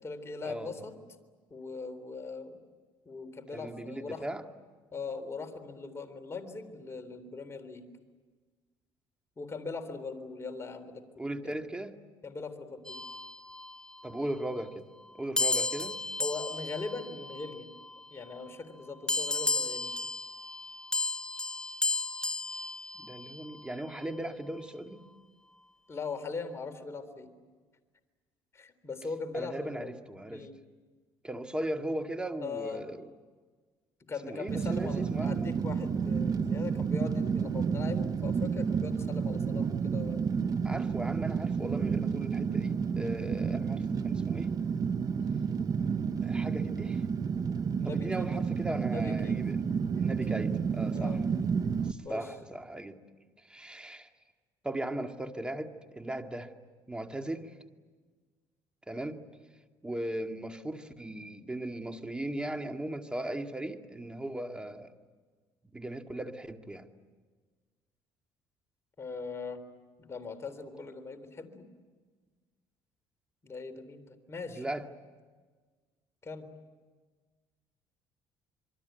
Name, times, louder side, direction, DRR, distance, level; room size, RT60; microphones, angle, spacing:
voice 1, 0.0-0.9 1.5-2.6 3.1-4.3 4.9-7.9 9.4-11.5 12.2-13.0 16.2-17.7 18.1-19.9 25.9-27.3 28.5-29.9 30.3-30.6 32.4-32.8 34.1-40.4 47.8-48.3 48.9-49.4 50.3-50.5 50.8-51.3 52.0-52.3 69.0-69.6 70.0-71.7 73.4-74.6 76.2-76.5, left 4 dB, 30° left, 7 dB, 3.6 m, -40 dB
voice 2, 3.5-4.4 11.2-12.0 14.0-14.9 15.1-16.0 23.0-25.1 29.3-30.5 31.2-33.0 34.2-35.5 40.6-44.6 46.2-47.0 47.8-49.6 50.0-51.2 51.8-53.0 53.4-54.1 54.6-56.5 56.9-57.5 58.9-59.2 59.8-64.9 65.7-66.9 74.6-74.9, right 1 dB, 10° right, 6 dB, 2.1 m, -37 dB
sound 1, 12.9-14.1 15.4-18.1 19.1-23.6, left 3 dB, 10° left, 0.8 m, -34 dB
Fire, 34.5-51.9, right 6 dB, 40° right, 1.1 m, -30 dB
26.5 x 23.5 x 9.4 m, 1.4 s
cardioid pair, 95°, 9 cm